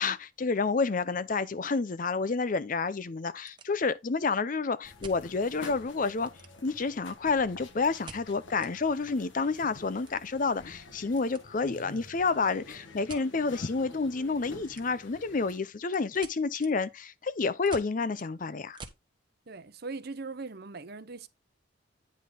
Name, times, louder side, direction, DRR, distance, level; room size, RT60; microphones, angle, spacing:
voice 1, 0.0-6.3 6.6-18.8, left 4 dB, 40° left, 0.5 m, -29 dB
sound 1, 3.3-4.2 5.0-5.8 6.1-6.9 8.0-8.7 9.1-9.2 9.5-11.5 11.7-12.0 13.1-13.3 14.6-15.2 15.5-19.1, right 4 dB, 25° right, 1.2 m, -49 dB
sound 2, 4.8-15.6, left 2 dB, 70° left, 1.5 m, -49 dB
voice 2, 19.5-21.3, right 3 dB, 50° right, 0.8 m, -40 dB
9.5 x 5.4 x 3.8 m
head